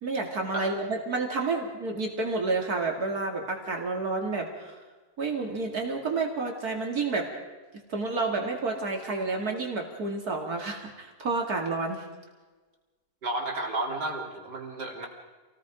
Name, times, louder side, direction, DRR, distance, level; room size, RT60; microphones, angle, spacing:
voice 1, 0.0-4.7 5.2-7.3 7.9-12.0, right 3 dB, 65° right, 2 dB, 2.8 m, -30 dB
voice 2, 13.2-15.1, right 2 dB, 80° right, 2 dB, 3.7 m, -32 dB
27.5 x 18.5 x 5.1 m, 1.3 s
omnidirectional pair, 1.8 m